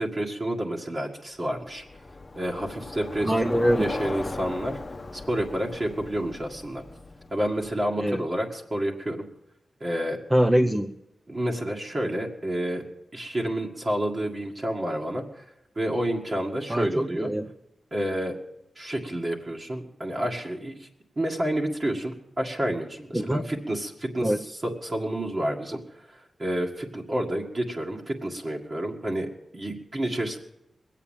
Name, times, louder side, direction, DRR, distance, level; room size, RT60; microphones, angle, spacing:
voice 1, 0.0-1.8 2.4-3.3 3.8-4.8 5.1-6.8 7.3-9.2 9.8-10.2 11.3-12.8 13.1-15.5 15.8-17.3 17.9-18.4 18.8-20.9 21.2-24.3 24.8-25.8 26.1-30.4, right 1 dB, 35° right, -1 dB, 1.9 m, -29 dB
Bicycle, 1.5-8.0, left 3 dB, 35° left, 0.9 m, -38 dB
voice 2, 3.2-3.9 8.0-8.2 10.3-10.9 16.7-17.5 23.1-23.4 24.2-24.4, equal, 10° right, 4 dB, 0.6 m, -23 dB
20.5 x 8.4 x 7.3 m, 0.86 s
cardioid pair, 75°, 0 cm